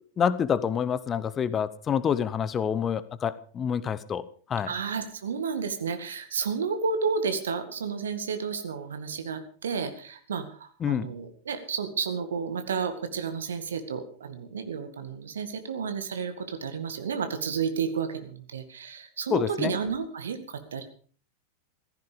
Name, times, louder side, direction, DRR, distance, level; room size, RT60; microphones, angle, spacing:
voice 1, 0.2-4.2 4.5-4.7 10.8-11.1 19.3-19.7, left 7 dB, 25° left, 16 dB, 0.9 m, -27 dB
voice 2, 4.6-20.8, right 6 dB, 65° right, 9 dB, 2.0 m, -31 dB
16.0 x 14.5 x 5.1 m, 0.43 s
figure-of-eight pair, 90°, 0 cm